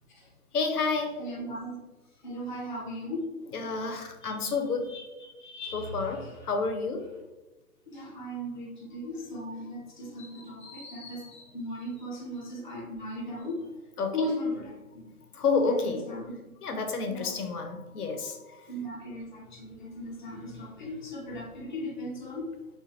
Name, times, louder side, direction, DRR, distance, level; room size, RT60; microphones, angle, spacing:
voice 1, 0.5-1.5 3.5-4.9 5.7-7.0 10.7-10.9 14.0-14.2 15.3-16.0 16.6-18.7, left 4 dB, 80° left, 5 dB, 0.7 m, -30 dB
voice 2, 1.2-1.8 2.2-3.3 4.2-6.5 7.9-13.7 14.1-15.0 15.6-16.3 17.1-17.3 18.7-22.5, left 1 dB, 35° left, -4 dB, 0.4 m, -37 dB
3.2 x 2.1 x 2.6 m, 1.1 s
hypercardioid pair, 160°, 45 cm